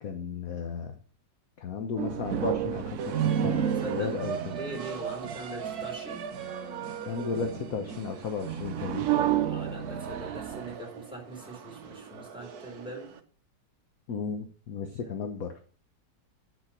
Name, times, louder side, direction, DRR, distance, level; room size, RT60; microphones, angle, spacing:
voice 1, 0.0-1.0 1.6-4.5 7.1-9.0 14.1-15.6, left 5 dB, 55° left, 5 dB, 1.2 m, -34 dB
sound 1, 2.0-5.0 8.2-10.7, right 11 dB, 80° right, 0.6 m, -31 dB
sound 2, 3.0-13.2, right 7 dB, 60° right, 1.4 m, -36 dB
voice 2, 3.6-4.1 4.5-6.2 9.4-13.1, right 2 dB, ahead, -1 dB, 4.1 m, -42 dB
9.3 x 6.3 x 5.8 m, 0.42 s
omnidirectional pair, 2.0 m